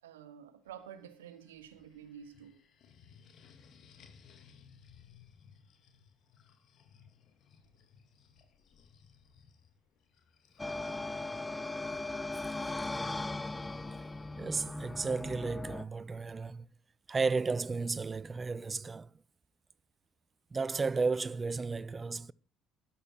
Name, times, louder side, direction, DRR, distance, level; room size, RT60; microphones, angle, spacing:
voice 1, 0.0-2.6, right 9 dB, 85° right, 1.3 m, -50 dB
sound 1, 0.7-14.4, left 6 dB, 55° left, 1.8 m, -62 dB
sound 2, 10.6-15.8, left 2 dB, 20° left, 0.7 m, -38 dB
voice 2, 14.4-16.6 17.1-19.1 20.5-22.3, right 4 dB, 30° right, 0.6 m, -33 dB
13.0 x 10.5 x 4.5 m
hypercardioid pair, 60°, 0 cm